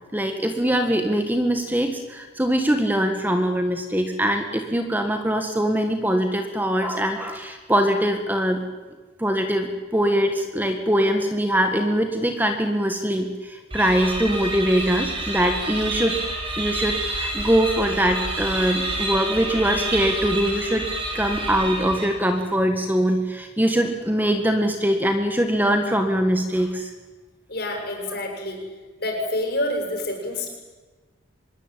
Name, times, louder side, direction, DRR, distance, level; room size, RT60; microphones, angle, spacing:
voice 1, 0.1-8.6 9.2-16.2 16.6-20.8 21.1-26.9, equal, 10° right, 5 dB, 1.8 m, -22 dB
sound 1, 13.7-22.4, right 2 dB, 25° right, 5.9 m, -29 dB
voice 2, 27.5-28.7 29.0-30.5, left 1 dB, 50° left, 2 dB, 7.6 m, -27 dB
25.5 x 21.5 x 9.2 m, 1.3 s
head